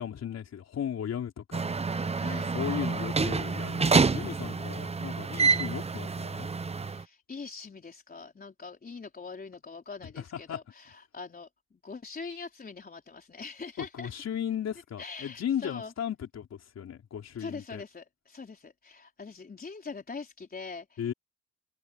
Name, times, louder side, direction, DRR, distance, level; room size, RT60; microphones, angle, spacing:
voice 1, 0.0-1.7 2.3-6.5 10.0-10.6 13.9-17.8 21.0-21.1, left 9 dB, 60° left, 4.1 m, -36 dB
sound 1, 1.5-7.0, right 4 dB, 20° right, 0.8 m, -28 dB
voice 2, 2.2-2.6 6.8-11.5 11.8-14.1 15.0-15.9 17.4-21.1, left 4 dB, 30° left, 4.2 m, -43 dB
cardioid pair, 90°, 30 cm